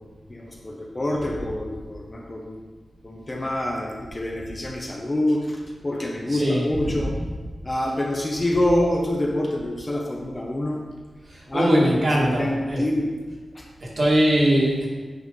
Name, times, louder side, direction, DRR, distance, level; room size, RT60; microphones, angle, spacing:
voice 1, 0.3-2.6 3.0-7.2 7.6-10.9 11.5-13.1 13.5-13.7, left 1 dB, 25° left, -1 dB, 1.1 m, -26 dB
voice 2, 6.3-7.1 11.3-12.8 13.8-14.9, equal, 45° right, -4 dB, 2.3 m, -21 dB
9.5 x 4.7 x 5.4 m, 1.3 s
wide cardioid pair, 140°, 0 cm